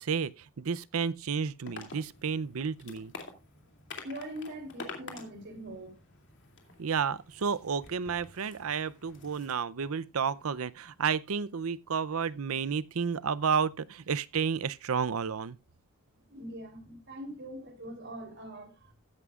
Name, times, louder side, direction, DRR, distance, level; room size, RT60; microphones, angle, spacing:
voice 1, 0.0-3.1 6.8-15.6, right 6 dB, 80° right, 0.6 m, -31 dB
sound 1, 1.7-9.6, left 4 dB, 60° left, 2.6 m, -48 dB
voice 2, 4.0-6.0 16.3-18.9, right 1 dB, 55° right, 3.5 m, -42 dB
15.0 x 11.0 x 2.4 m
head